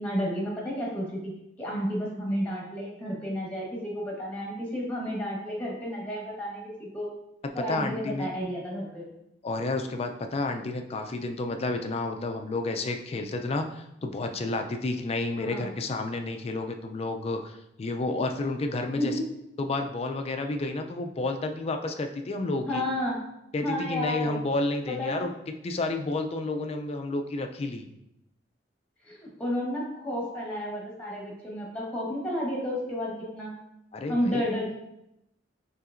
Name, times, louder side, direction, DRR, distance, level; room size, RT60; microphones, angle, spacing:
voice 1, 0.0-7.1 7.5-9.1 15.4-15.7 19.0-19.1 22.7-23.2 23.6-24.4 24.9-25.2 29.0-33.5 34.1-34.7, equal, 10° left, -3 dB, 1.2 m, -31 dB
voice 2, 7.7-8.3 9.4-19.1 19.6-22.8 23.5-25.3 25.6-27.9 33.9-34.4, left 2 dB, 35° left, 5 dB, 0.4 m, -30 dB
5.6 x 3.2 x 2.5 m, 0.84 s
head